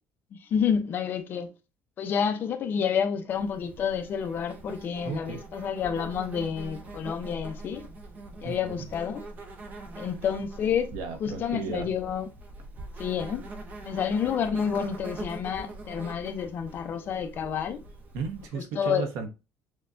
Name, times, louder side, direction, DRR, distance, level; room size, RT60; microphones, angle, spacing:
voice 1, 0.3-1.5 2.0-7.8 8.4-9.2 10.0-10.9 11.2-12.3 13.0-13.4 13.8-17.8 18.5-19.1, left 7 dB, 40° left, 0.5 m, -29 dB
Insect, 3.3-18.5, right 2 dB, 30° right, 0.7 m, -43 dB
voice 2, 5.0-5.4 8.4-8.9 10.9-11.9 18.1-19.3, right 5 dB, 80° right, 1.0 m, -34 dB
6.3 x 2.2 x 2.5 m
cardioid pair, 165°, 6 cm